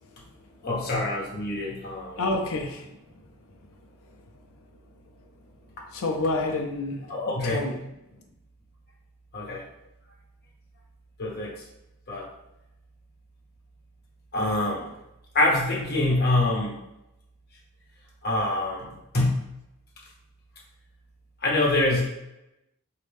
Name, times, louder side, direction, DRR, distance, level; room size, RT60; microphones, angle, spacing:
voice 1, 0.6-2.2 7.1-7.7 9.3-9.6 11.2-11.6 12.1-12.3 14.3-14.9 15.3-16.8 18.2-19.4 21.4-22.0, left 2 dB, 45° left, -3 dB, 1.1 m, -25 dB
voice 2, 2.2-2.8 5.9-7.8, left 2 dB, 65° left, 3 dB, 0.5 m, -28 dB
4.1 x 2.8 x 3.4 m, 0.88 s
head